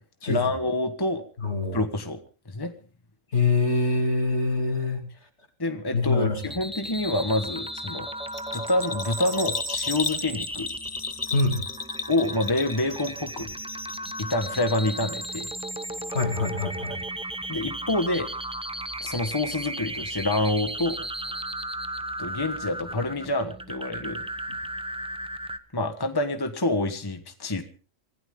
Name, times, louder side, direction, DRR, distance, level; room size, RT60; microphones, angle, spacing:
voice 1, 0.3-1.2 1.7-2.2 2.5-2.7 5.6-8.1 8.5-10.7 12.1-13.5 14.2-15.5 17.5-18.3 19.0-21.0 22.2-24.2 25.7-27.6, left 2 dB, 20° left, 7 dB, 1.3 m, -27 dB
voice 2, 1.4-1.8 3.3-5.0 5.9-6.4 11.3-11.6 16.1-17.0, left 3 dB, 55° left, 4 dB, 3.2 m, -24 dB
sound 1, 6.4-25.6, right 1 dB, 5° right, 0.7 m, -35 dB
Bell, 8.3-13.4 13.7-14.5 14.8-14.9, left 5 dB, 35° left, 1.0 m, -33 dB
25.0 x 15.5 x 3.8 m, 0.37 s
omnidirectional pair, 1.4 m